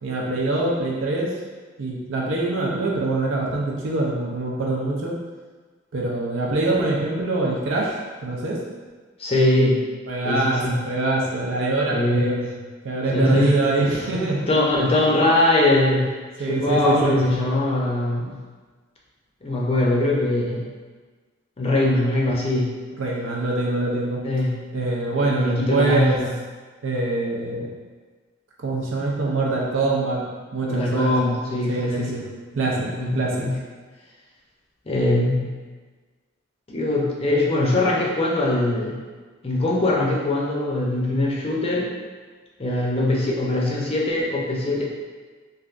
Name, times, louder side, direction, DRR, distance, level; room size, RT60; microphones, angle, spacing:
voice 1, 0.0-1.3 1.8-5.1 5.9-8.6 10.1-12.5 12.8-14.4 16.4-17.2 23.0-24.2 24.7-26.2 26.8-27.7 28.6-30.2 30.5-31.1 31.7-32.2 32.5-33.5, right 2 dB, 75° right, -3 dB, 0.6 m, -24 dB
voice 2, 9.2-9.8 10.2-10.8 11.9-12.4 13.1-13.5 13.8-13.9 14.5-16.1 16.5-18.4 19.4-20.7 21.6-22.7 24.2-24.6 25.2-26.3 30.6-32.1 33.0-33.5 34.9-35.5 36.7-39.0 39.4-41.9 42.6-44.8, left 1 dB, 30° left, -3 dB, 0.5 m, -21 dB
3.2 x 2.5 x 2.4 m, 1.4 s
head